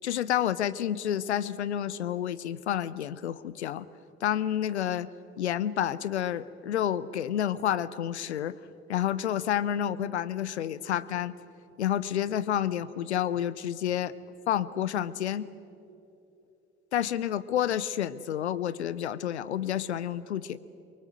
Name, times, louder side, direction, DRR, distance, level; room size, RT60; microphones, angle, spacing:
voice 1, 0.0-3.9 4.2-5.1 5.4-8.6 8.9-11.3 11.8-14.1 14.5-15.5 16.9-20.6, left 10 dB, 85° left, 18 dB, 0.6 m, -29 dB
24.5 x 23.5 x 7.8 m, 2.9 s
figure-of-eight pair, 45°, 33 cm